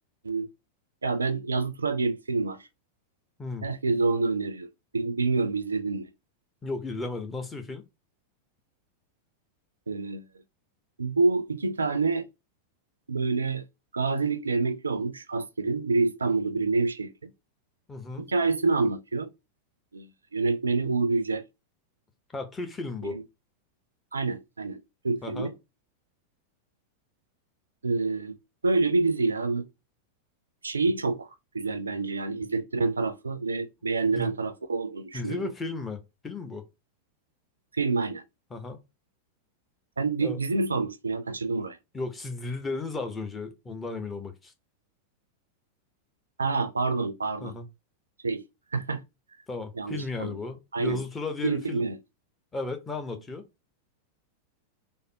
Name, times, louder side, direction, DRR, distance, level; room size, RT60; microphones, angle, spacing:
voice 1, 1.0-2.6 3.6-4.7 4.9-6.1 9.9-10.3 11.0-12.3 13.1-13.6 13.9-17.3 18.2-19.3 19.9-21.4 23.0-23.2 24.1-25.5 27.8-28.3 28.6-29.7 30.6-31.3 31.5-35.5 37.8-38.2 40.0-41.8 46.4-47.5 48.2-48.4 48.7-49.0 49.8-50.4 50.7-51.0 51.4-52.0, right 3 dB, 75° right, 0.3 m, -27 dB
voice 2, 6.6-7.8 17.9-18.3 22.3-23.2 25.2-25.5 34.2-34.3 35.1-36.6 38.5-38.8 40.2-40.4 41.9-44.5 47.4-47.7 49.5-51.8 52.5-53.4, left 3 dB, 15° left, 0.7 m, -35 dB
3.3 x 2.1 x 2.6 m
figure-of-eight pair, 90°, 0 cm